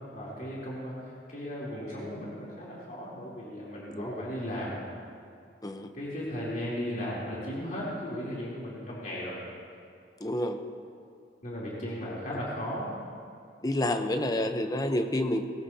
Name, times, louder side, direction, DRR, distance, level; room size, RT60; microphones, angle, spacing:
voice 1, 0.1-4.8 5.9-9.4 11.4-13.0, equal, 50° left, -7 dB, 3.3 m, -36 dB
voice 2, 5.6-5.9 10.2-10.6 13.6-15.5, left 1 dB, 20° left, 7 dB, 0.8 m, -29 dB
20.0 x 17.0 x 2.8 m, 2.3 s
head